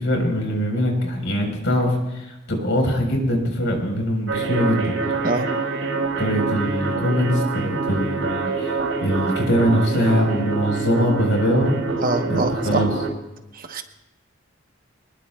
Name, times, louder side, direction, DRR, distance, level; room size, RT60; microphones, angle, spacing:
voice 1, 0.0-4.9 6.2-11.7 12.3-12.9, equal, 65° left, 2 dB, 4.1 m, -22 dB
sound 1, 4.3-13.1, right 4 dB, 75° right, 4.9 m, -26 dB
voice 2, 12.0-12.9 13.5-13.8, right 2 dB, 40° right, 6 dB, 1.0 m, -24 dB
26.0 x 20.0 x 2.3 m, 0.96 s
head